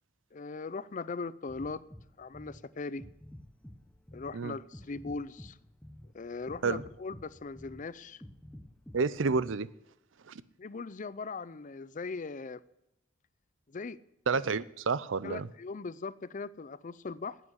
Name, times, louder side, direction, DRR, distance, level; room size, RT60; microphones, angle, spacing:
voice 1, 0.3-1.8 2.2-3.0 4.1-5.6 6.1-8.2 10.6-12.6 13.7-14.0 15.2-17.4, left 4 dB, 40° left, 0.5 m, -39 dB
sound 1, 1.5-9.5, equal, 5° left, 0.8 m, -51 dB
voice 2, 8.9-9.7 10.3-10.4 14.3-15.5, right 4 dB, 80° right, 0.6 m, -30 dB
9.5 x 8.6 x 9.9 m
head